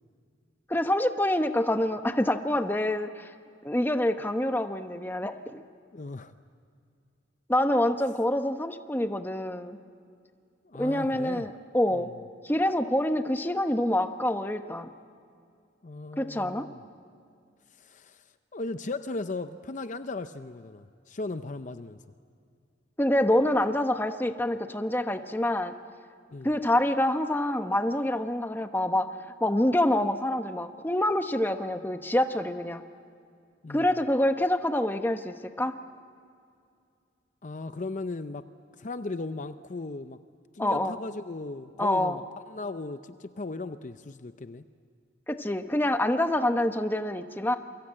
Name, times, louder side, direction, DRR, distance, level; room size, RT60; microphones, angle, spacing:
voice 1, 0.7-3.3 3.6-5.6 7.5-9.8 10.8-12.1 12.4-14.9 16.2-16.7 23.0-25.7 26.4-29.1 29.4-32.8 33.7-35.7 40.6-41.0 41.8-42.2 45.3-47.5, left 1 dB, 10° left, 7 dB, 1.0 m, -26 dB
voice 2, 5.9-6.3 10.6-11.5 11.9-12.2 15.8-16.8 17.8-18.3 18.5-22.0 26.3-26.5 33.6-33.9 37.4-38.5 38.8-40.2 40.5-44.6, left 3 dB, 40° left, 10 dB, 0.6 m, -37 dB
28.5 x 24.0 x 8.8 m, 2.3 s
head